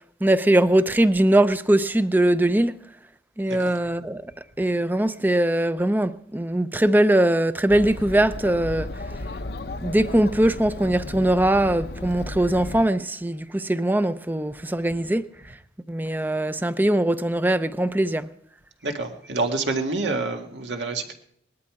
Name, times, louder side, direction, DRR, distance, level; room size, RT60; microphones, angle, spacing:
voice 1, 0.2-2.7 3.4-4.3 4.6-8.9 9.8-15.2 15.9-18.3, right 1 dB, 10° right, 0.5 m, -21 dB
Chatter, 7.7-12.9, left 2 dB, 60° left, 0.7 m, -34 dB
voice 2, 18.8-21.1, right 3 dB, 80° right, 1.9 m, -27 dB
20.0 x 12.5 x 4.8 m
head